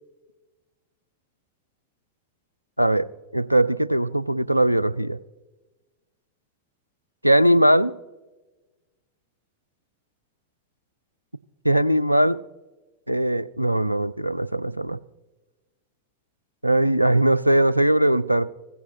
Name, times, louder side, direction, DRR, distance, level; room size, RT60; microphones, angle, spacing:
voice 1, 3.3-5.2 7.2-7.9 11.6-12.4 13.1-15.0 16.6-18.5, right 1 dB, 90° right, 18 dB, 0.3 m, -20 dB
16.0 x 15.0 x 2.7 m, 1.2 s
figure-of-eight pair, 90°, 0 cm